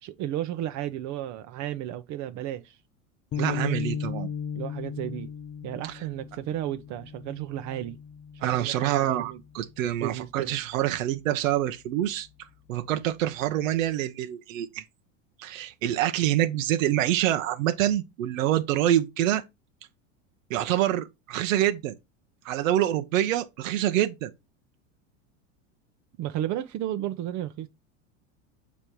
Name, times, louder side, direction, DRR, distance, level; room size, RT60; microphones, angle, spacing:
voice 1, 0.0-2.8 3.4-3.8 4.5-5.3 5.6-8.0 8.4-9.4 10.0-10.6 26.2-27.7, right 12 dB, 45° right, 0.8 m, -33 dB
sound 1, 3.3-9.7, left 7 dB, 20° left, 0.3 m, -36 dB
voice 2, 3.3-4.3 8.4-12.3 12.7-14.8 15.4-19.4 20.5-21.9 22.4-24.3, right 12 dB, 80° right, 1.0 m, -26 dB
7.1 x 4.3 x 4.6 m
supercardioid pair, 110°, 38 cm